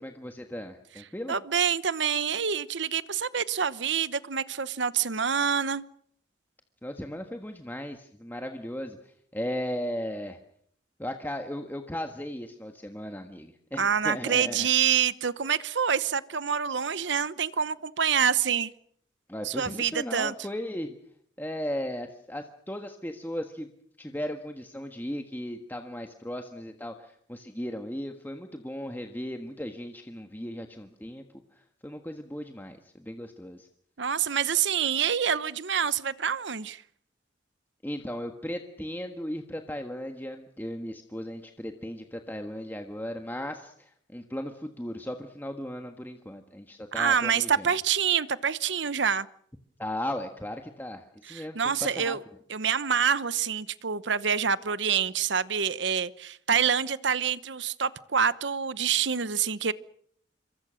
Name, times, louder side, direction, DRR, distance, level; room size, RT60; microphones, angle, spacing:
voice 1, 0.0-1.4 6.8-9.0 9.3-10.4 11.0-14.7 19.3-20.9 21.4-23.7 24.0-31.2 31.8-33.7 37.8-47.6 49.8-52.2, equal, 10° left, 1.5 m, -36 dB
voice 2, 1.3-5.8 13.8-18.7 19.4-20.3 34.0-36.8 46.9-49.3 51.3-52.2 52.5-59.7, right 7 dB, 70° right, 0.9 m, -26 dB
27.5 x 23.0 x 6.4 m
head